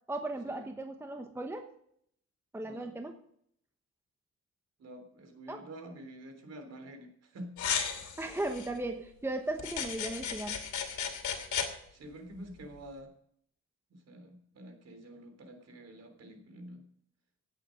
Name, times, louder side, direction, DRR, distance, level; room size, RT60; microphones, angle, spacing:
voice 1, 0.1-1.7 2.5-3.2 5.5-5.6 7.9-10.6, right 2 dB, 10° right, 5 dB, 1.1 m, -37 dB
voice 2, 2.6-2.9 4.8-7.5 11.9-13.1 13.9-16.8, right 1 dB, 60° right, 6 dB, 3.5 m, -48 dB
sound 1, 7.6-8.7 9.6-11.7, left 7 dB, 80° left, 2.8 m, -35 dB
17.0 x 8.6 x 5.3 m, 0.67 s
wide cardioid pair, 150°, 29 cm